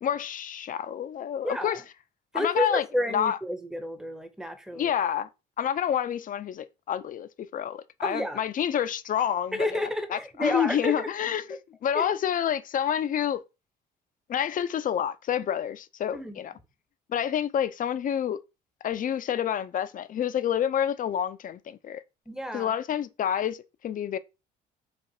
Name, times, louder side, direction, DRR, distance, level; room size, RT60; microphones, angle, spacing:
voice 1, 0.0-1.8 2.3-3.4 4.7-5.3 5.6-9.8 10.1-13.4 14.3-16.5 17.1-18.4 18.8-22.0 22.5-24.2, left 9 dB, 40° left, 0.4 m, -28 dB
voice 2, 1.4-1.8 2.3-4.9 8.0-8.4 9.5-11.1 11.9-12.1 16.1-16.4 22.3-22.7, left 1 dB, 5° right, 0.7 m, -30 dB
4.1 x 2.5 x 2.7 m
supercardioid pair, 65°, 21 cm